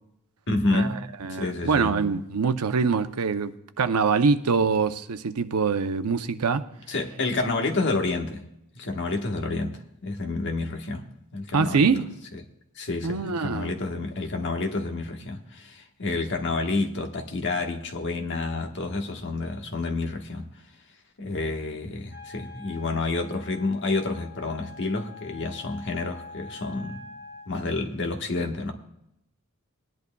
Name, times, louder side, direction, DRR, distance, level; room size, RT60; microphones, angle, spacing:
voice 1, 0.5-1.0 1.3-2.0 6.9-8.4 8.7-11.1 11.3-11.9 12.8-20.5 21.2-27.0 27.5-28.7, left 3 dB, 55° left, 1.3 m, -29 dB
voice 2, 1.2-6.6 11.5-12.1 13.0-13.7, right 5 dB, 90° right, 0.7 m, -24 dB
Wind instrument woodwind instrument, 22.1-27.5, left 4 dB, 15° right, 2.7 m, -45 dB
19.5 x 11.0 x 2.3 m
head